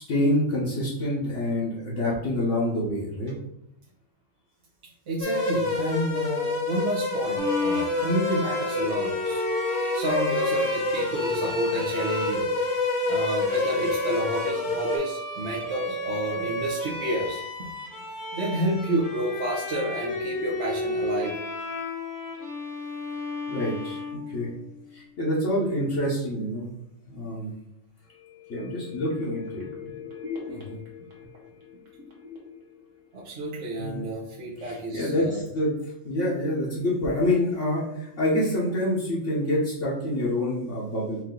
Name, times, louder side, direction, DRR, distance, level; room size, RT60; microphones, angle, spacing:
voice 1, 0.0-3.3 23.5-24.0 24.3-24.5 24.9-26.7 27.1-27.5 28.5-29.9 33.8-34.0 34.6-35.7 36.0-41.2, left 1 dB, 65° left, -7 dB, 1.4 m, -27 dB
voice 2, 5.1-9.4 9.7-12.5 13.1-17.4 18.3-21.4 30.5-30.8 33.1-35.4, right 1 dB, 60° right, -6 dB, 1.1 m, -30 dB
sound 1, 5.2-15.0, left 3 dB, 90° left, 1.8 m, -28 dB
Bowed string instrument, 7.4-24.8, left 1 dB, 15° left, 0.8 m, -33 dB
sound 2, 28.0-33.7 34.1-34.2, left 6 dB, 85° right, 1.6 m, -42 dB
4.8 x 2.8 x 3.7 m, 0.83 s
omnidirectional pair, 1.4 m